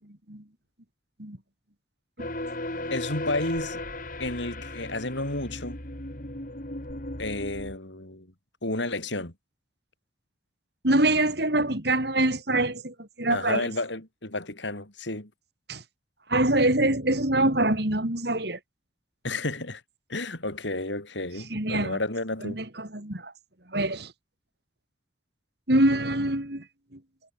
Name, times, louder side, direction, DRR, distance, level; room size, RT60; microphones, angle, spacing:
voice 1, 0.0-0.4 1.2-1.4 2.2-2.3 10.8-13.7 15.7-15.8 16.3-18.6 21.5-22.0 22.4-23.3 23.7-24.1 25.7-26.7 26.9-27.0, right 1 dB, 55° right, 3.8 m, -25 dB
sound 1, 2.2-7.8, left 1 dB, 45° left, 4.0 m, -36 dB
voice 2, 2.9-3.8 4.2-5.8 7.2-8.3 8.6-9.3 13.3-15.3 19.2-19.8 20.1-22.6, left 2 dB, 70° left, 5.0 m, -31 dB
head